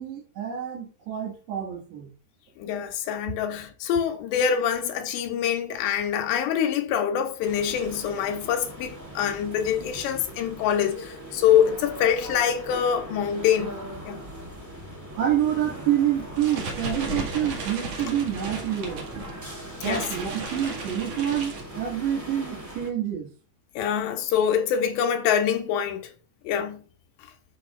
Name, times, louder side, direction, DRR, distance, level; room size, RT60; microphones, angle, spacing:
voice 1, 0.0-2.1 15.2-19.1 19.8-23.3, right 10 dB, 75° right, 3.8 m, -27 dB
voice 2, 2.6-14.2 19.8-20.1 23.8-26.1 26.4-26.8, left 8 dB, 85° left, 3.1 m, -25 dB
sound 1, 7.4-22.9, equal, 15° right, 0.6 m, -40 dB
sound 2, 16.2-22.1, right 2 dB, 50° right, 2.2 m, -35 dB
13.0 x 5.9 x 2.4 m
omnidirectional pair, 5.1 m